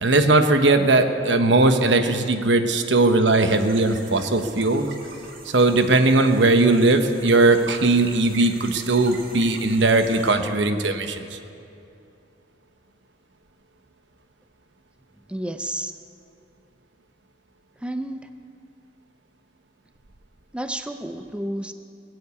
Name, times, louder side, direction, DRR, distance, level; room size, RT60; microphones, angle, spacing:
voice 1, 0.0-4.9 5.4-11.4, right 2 dB, 80° right, 7 dB, 1.0 m, -19 dB
sound 1, 3.3-10.3, right 3 dB, 55° right, 1.9 m, -43 dB
voice 2, 15.3-15.9 17.8-18.3 20.5-21.7, right 1 dB, 5° right, 8 dB, 0.5 m, -30 dB
20.5 x 7.8 x 8.4 m, 2.6 s
head